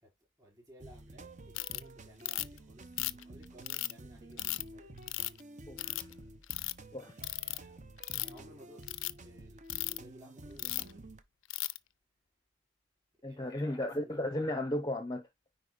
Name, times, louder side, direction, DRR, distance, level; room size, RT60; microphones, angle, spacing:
voice 1, 0.4-5.0 7.2-7.8 8.2-8.8 9.1-11.1 13.2-14.5, equal, 15° right, 4.9 m, -58 dB
sound 1, 0.8-11.2, right 1 dB, 35° right, 0.8 m, -51 dB
Ratchet pawl, 1.5-1.8 2.2-2.6 3.0-3.9 4.4-4.6 5.1-5.4 5.8-6.1 6.4-6.7 7.2-7.6 8.0-8.4 8.8-9.1 9.7-10.0 10.6-10.9 11.5-11.8, left 18 dB, 65° left, 0.5 m, -35 dB
voice 2, 5.7-6.1 6.9-7.1 13.2-15.2, left 1 dB, 20° left, 0.7 m, -35 dB
9.7 x 4.3 x 2.5 m
head